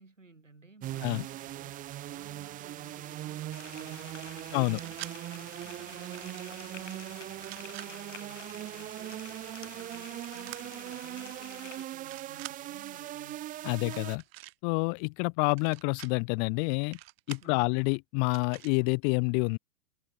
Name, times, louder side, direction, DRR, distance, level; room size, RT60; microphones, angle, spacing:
voice 1, 0.0-5.0 5.3-9.3 9.7-13.5 17.4-17.8, right 3 dB, 90° right, 4.9 m, -56 dB
sound 1, 0.8-14.2, right 14 dB, 20° right, 0.6 m, -40 dB
sound 2, 3.5-11.9, left 8 dB, 75° left, 2.3 m, -50 dB
sound 3, 4.6-5.1 6.0-6.5 7.3-7.9 10.4-10.6 11.4-11.6 11.9-12.6 13.8-14.5 15.5-16.1 16.9-17.5 18.3-18.7, right 17 dB, 55° right, 0.9 m, -46 dB
voice 2, 13.6-14.2 14.6-17.0 17.3-19.6, left 40 dB or more, 40° left, 0.8 m, -28 dB
figure-of-eight pair, 95°, 37 cm